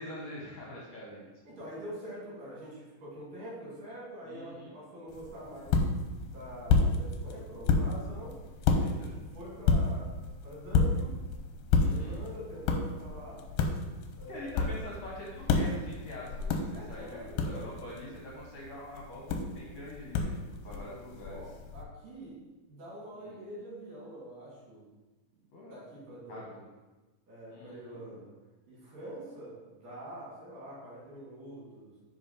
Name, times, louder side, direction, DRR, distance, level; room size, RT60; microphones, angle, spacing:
voice 1, 0.0-1.3 4.2-4.8 8.8-9.1 11.7-12.2 14.3-20.3 20.6-21.4 23.1-23.4 25.5-25.8 26.3-26.7 27.5-28.0, left 1 dB, 70° left, -4 dB, 1.7 m, -44 dB
voice 2, 1.4-5.8 6.3-8.3 8.8-10.1 10.4-11.2 11.7-13.4 14.1-14.5 16.7-17.7 20.7-20.9 21.2-22.4 22.7-24.9 25.7-26.6 27.3-28.3 28.7-31.9, right 1 dB, 70° right, -6 dB, 3.9 m, -45 dB
sound 1, 5.1-21.8, left 4 dB, 90° left, 2.4 m, -31 dB
9.9 x 3.5 x 4.1 m, 1.2 s
omnidirectional pair, 4.1 m